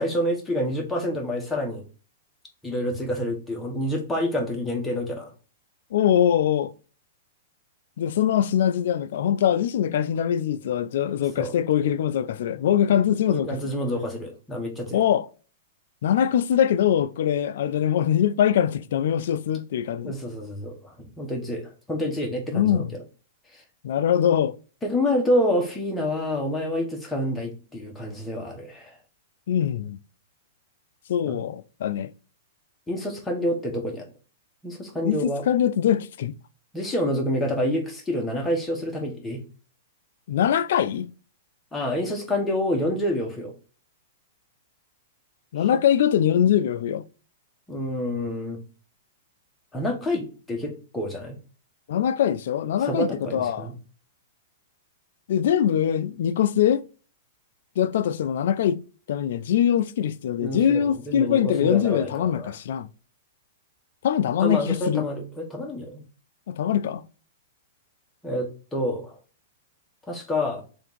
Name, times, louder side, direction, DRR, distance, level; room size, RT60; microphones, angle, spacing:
voice 1, 0.0-1.8 2.6-5.3 11.4-11.5 13.3-15.0 20.0-22.8 23.5-23.6 24.8-29.0 31.2-31.4 32.9-34.1 34.6-35.4 36.7-39.4 41.7-43.5 47.7-48.6 49.7-51.4 52.8-53.7 60.4-62.5 64.4-66.0 68.2-69.2 70.1-70.6, left 1 dB, 10° left, 1.2 m, -28 dB
voice 2, 5.9-6.7 8.0-13.7 14.9-15.3 16.0-20.1 22.5-22.9 23.8-24.6 29.5-30.0 31.1-32.1 35.0-36.3 40.3-41.1 45.5-47.0 51.9-53.7 55.3-56.8 57.8-58.8 59.1-62.9 64.0-65.1 66.5-67.0, left 9 dB, 70° left, 0.3 m, -23 dB
3.4 x 2.6 x 4.5 m
hypercardioid pair, 135°, 0 cm